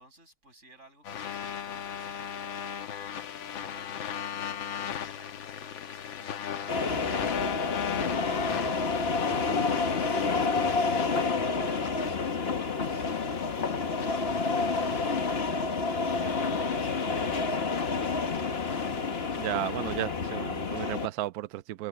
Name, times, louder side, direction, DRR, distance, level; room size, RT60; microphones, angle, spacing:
voice 1, 0.0-18.8, right 2 dB, 35° right, 8.4 m, -57 dB
sound 1, 1.0-20.1, left 9 dB, 85° left, 2.0 m, -38 dB
sound 2, 6.7-21.1, left 4 dB, 35° left, 1.4 m, -29 dB
voice 2, 19.4-21.9, right 14 dB, 75° right, 0.8 m, -34 dB
omnidirectional pair, 2.1 m